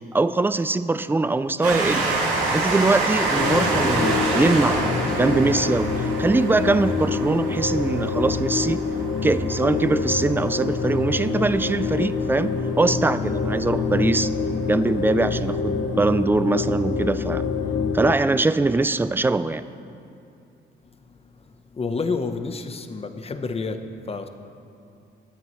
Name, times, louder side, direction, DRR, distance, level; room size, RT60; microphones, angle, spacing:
voice 1, 0.1-2.1 2.5-4.8 5.1-5.9 6.2-8.8 9.2-14.3 14.7-17.4 17.9-19.6, right 3 dB, 10° right, 13 dB, 0.4 m, -22 dB
Train, 1.6-12.8 13.5-13.6 13.8-13.9, right 2 dB, 90° right, 2.7 m, -27 dB
sound 1, 3.4-18.1, left 5 dB, 70° left, 1.0 m, -26 dB
voice 2, 21.7-24.3, left 4 dB, 30° left, 8 dB, 0.9 m, -29 dB
24.0 x 8.7 x 3.1 m, 2.6 s
cardioid pair, 90°, 20 cm